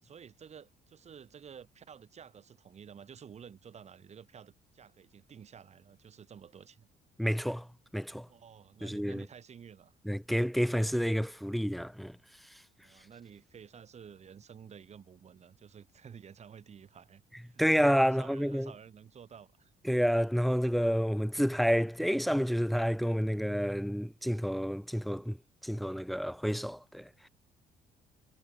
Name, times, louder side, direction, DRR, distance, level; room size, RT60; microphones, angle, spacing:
voice 1, 0.0-6.9 8.3-9.9 12.8-17.6 18.0-19.7, right 7 dB, 40° right, 4.4 m, -52 dB
voice 2, 7.2-7.7 7.9-8.3 8.8-9.2 10.1-12.2 17.6-18.7 19.8-25.4 25.6-27.3, equal, ahead, 0.6 m, -29 dB
cardioid pair, 110°, 17 cm